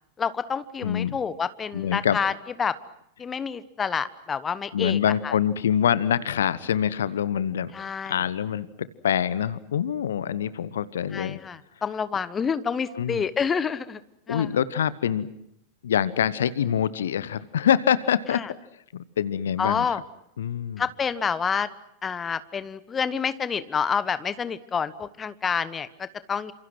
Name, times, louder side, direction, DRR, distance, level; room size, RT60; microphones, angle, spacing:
voice 1, 0.2-2.3 2.6-2.8 3.2-5.0 5.2-5.3 7.7-8.2 11.1-14.0 14.3-14.5 18.3-18.5 19.6-20.0 20.8-21.7 22.0-26.5, left 6 dB, 20° left, 15 dB, 1.2 m, -28 dB
voice 2, 0.8-1.2 1.7-2.2 4.7-7.7 8.1-11.4 13.0-13.2 14.3-15.3 15.8-18.4 18.9-19.9 20.4-20.8, left 9 dB, 65° left, 17 dB, 1.1 m, -25 dB
30.0 x 27.0 x 6.2 m, 0.77 s
figure-of-eight pair, 90°, 0 cm